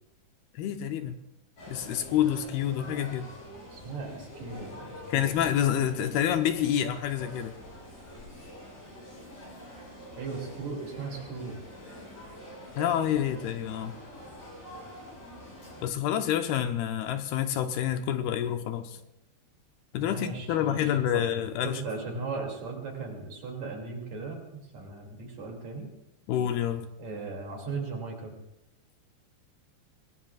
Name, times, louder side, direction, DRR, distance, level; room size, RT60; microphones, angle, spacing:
voice 1, 0.5-1.2 1.7-3.3 5.1-7.6 12.8-13.9 15.8-19.0 19.9-21.8 26.3-26.9, left 10 dB, 80° left, 8 dB, 2.6 m, -28 dB
sound 1, 1.6-15.9, left 1 dB, 45° left, 9.1 m, -46 dB
voice 2, 3.7-5.3 10.2-11.6 20.0-21.2 21.6-24.4 24.7-25.9 27.0-28.3, right 4 dB, 45° right, 0 dB, 3.6 m, -37 dB
26.5 x 18.5 x 2.4 m, 0.87 s
omnidirectional pair, 4.7 m